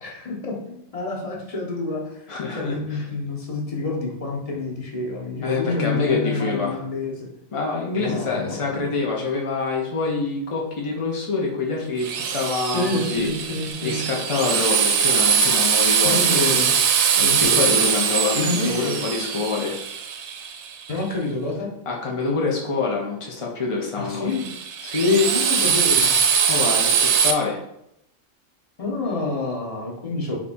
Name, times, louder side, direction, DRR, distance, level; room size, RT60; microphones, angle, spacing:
voice 1, 0.0-2.2 2.5-7.3 8.0-8.9 12.7-14.0 16.0-16.7 17.2-17.7 18.3-19.0 20.9-21.7 24.0-24.5 25.3-26.1 28.8-30.4, left 2 dB, 30° left, -2 dB, 0.8 m, -28 dB
voice 2, 2.3-3.0 5.4-6.8 7.5-13.3 13.6-16.4 17.4-19.8 21.9-24.4 24.8-25.3 26.5-27.6, left 4 dB, 50° left, -1 dB, 0.3 m, -25 dB
Drill, 12.0-20.9 24.3-27.3, right 7 dB, 65° right, 0.8 m, -21 dB
3.4 x 3.0 x 4.2 m, 0.79 s
omnidirectional pair, 1.4 m